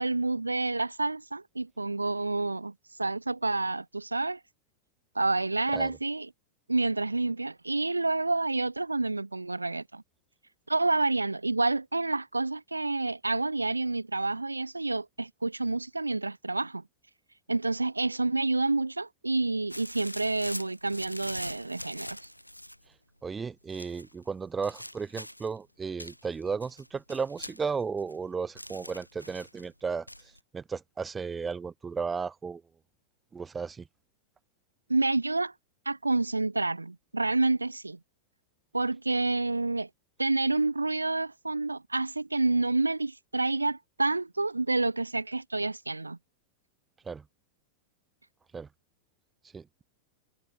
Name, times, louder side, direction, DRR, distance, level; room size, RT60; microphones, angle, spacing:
voice 1, 0.0-2.7 3.0-4.4 5.1-6.3 6.7-10.0 10.7-16.8 17.5-22.2 34.9-35.5 35.9-38.0 38.7-39.9 40.2-46.2, right 2 dB, 80° right, 0.8 m, -28 dB
sound 1, 19.7-22.9 23.7-24.1 24.6-25.6 26.0-28.2 28.5-29.6 30.1-30.4, equal, 90° left, 3.0 m, -43 dB
voice 2, 23.2-30.1 30.5-32.6 33.3-33.9 47.1-47.2 48.5-48.7 49.5-49.8, right 5 dB, 15° right, 1.8 m, -34 dB
figure-of-eight pair, 90°, 0 cm